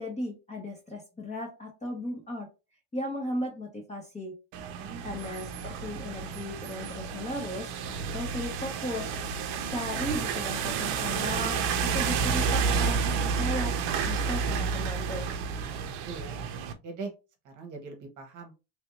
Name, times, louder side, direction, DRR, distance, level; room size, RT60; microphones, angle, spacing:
voice 1, 0.0-2.5 2.9-4.3 4.8-9.1 9.7-13.7 14.0-15.3, left 1 dB, 15° left, 1 dB, 0.9 m, -36 dB
sound 1, 4.5-16.7, right 5 dB, 55° right, 0.8 m, -30 dB
voice 2, 4.8-5.2 16.0-16.4 16.8-17.1 17.4-18.5, right 4 dB, 40° right, 4 dB, 1.1 m, -42 dB
3.3 x 2.7 x 3.2 m, 0.28 s
cardioid pair, 145°, 49 cm